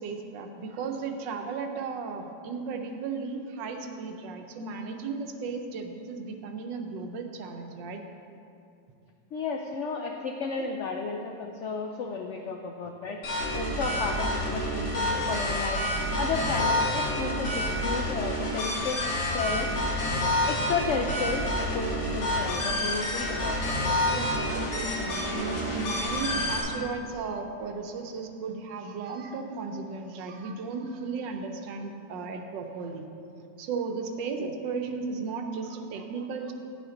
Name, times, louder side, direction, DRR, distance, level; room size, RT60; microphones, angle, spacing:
voice 1, 0.0-8.0 10.6-10.7 24.1-33.1 33.4-36.5, right 4 dB, 85° right, 5 dB, 1.4 m, -35 dB
voice 2, 9.3-15.8 16.2-19.7 20.5-23.8 34.4-34.5, left 4 dB, 90° left, 2 dB, 0.6 m, -33 dB
sound 1, 13.2-26.6, left 1 dB, 70° left, 2.4 m, -28 dB
10.0 x 8.6 x 3.8 m, 2.6 s
omnidirectional pair, 1.9 m